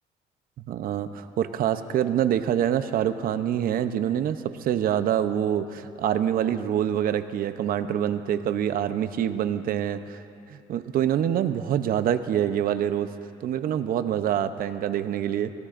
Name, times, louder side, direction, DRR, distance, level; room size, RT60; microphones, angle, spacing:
voice 1, 0.6-10.2 10.5-13.1 13.4-15.5, right 10 dB, 60° right, 11 dB, 0.7 m, -26 dB
21.0 x 17.5 x 2.5 m, 2.6 s
cardioid pair, 110°, 17 cm